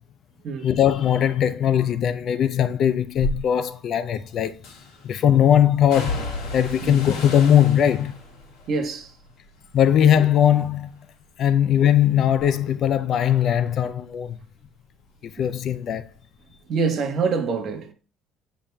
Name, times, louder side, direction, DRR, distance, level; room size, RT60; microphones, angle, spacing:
voice 1, 0.6-4.5 5.0-8.2 9.7-10.9 11.4-14.4 15.3-16.0, left 10 dB, 40° left, 0.4 m, -20 dB
sound 1, 3.2-3.4 4.6-5.1 5.9-10.1 10.5-11.1 11.5-14.7 15.0-16.1 16.4-16.6, left 2 dB, 70° left, 2.9 m, -35 dB
voice 2, 8.7-9.2 16.7-17.9, right 5 dB, 40° right, 1.1 m, -25 dB
8.7 x 5.3 x 2.2 m
cardioid pair, 165°, 0 cm